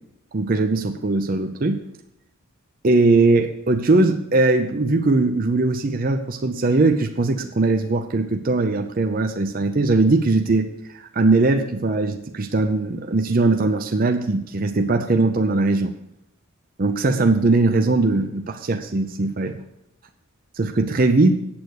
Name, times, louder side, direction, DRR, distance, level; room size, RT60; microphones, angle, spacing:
voice 1, 0.3-1.8 2.8-10.7 10.9-16.0 16.8-19.6 20.6-21.4, right 3 dB, 40° right, 6 dB, 0.5 m, -20 dB
8.7 x 8.1 x 6.2 m, 0.79 s
head